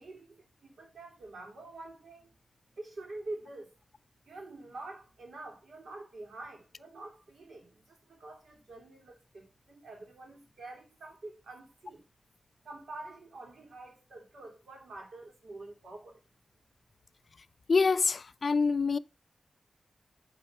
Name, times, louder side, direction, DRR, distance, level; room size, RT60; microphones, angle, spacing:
voice 1, 0.0-2.3 2.8-3.7 4.2-12.0 12.6-16.2, right 2 dB, 80° right, 2.8 m, -46 dB
voice 2, 17.7-19.0, left 4 dB, 55° left, 0.3 m, -26 dB
7.8 x 4.1 x 5.3 m
wide cardioid pair, 100°, 0 cm